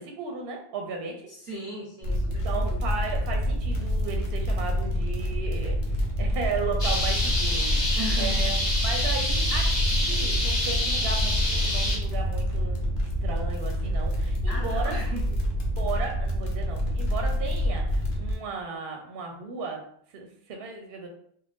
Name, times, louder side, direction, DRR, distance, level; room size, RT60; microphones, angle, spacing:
voice 1, 0.0-1.3 2.4-8.6 8.8-15.0 15.8-19.8 20.1-21.1, right 4 dB, 65° right, 2 dB, 0.7 m, -35 dB
voice 2, 1.3-2.7 8.0-8.5 14.5-15.4, right 1 dB, 20° right, -7 dB, 0.8 m, -37 dB
sound 1, 2.0-18.3, equal, 80° left, 1.0 m, -27 dB
sound 2, 6.8-12.0, left 1 dB, 30° left, 0.9 m, -26 dB
2.5 x 2.1 x 3.4 m, 0.64 s
omnidirectional pair, 1.2 m